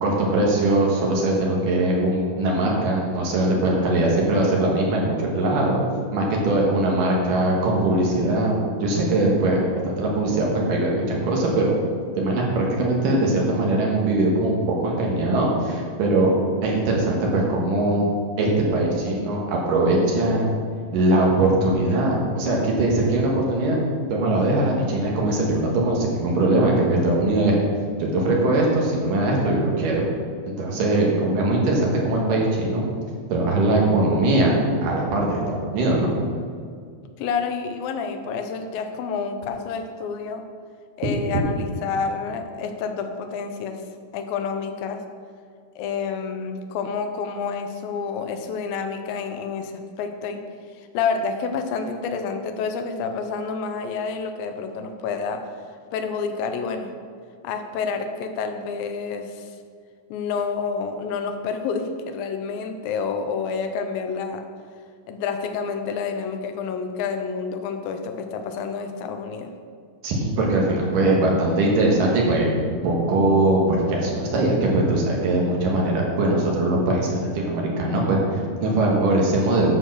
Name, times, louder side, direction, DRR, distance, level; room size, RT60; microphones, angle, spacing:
voice 1, 0.0-5.8 6.1-11.7 12.2-16.3 16.6-18.1 18.4-20.5 20.9-23.8 24.1-27.6 28.0-30.1 30.5-32.8 33.3-36.1 70.0-72.5 72.8-79.8, right 2 dB, 70° right, -2 dB, 3.1 m, -21 dB
voice 2, 37.2-40.4 41.0-43.8 44.1-45.0 45.8-49.7 50.0-50.4 50.8-55.4 55.9-56.9 57.4-59.5 60.1-64.4 65.1-69.5, left 5 dB, 90° left, 6 dB, 2.6 m, -29 dB
12.0 x 4.6 x 6.2 m, 2.1 s
omnidirectional pair, 4.0 m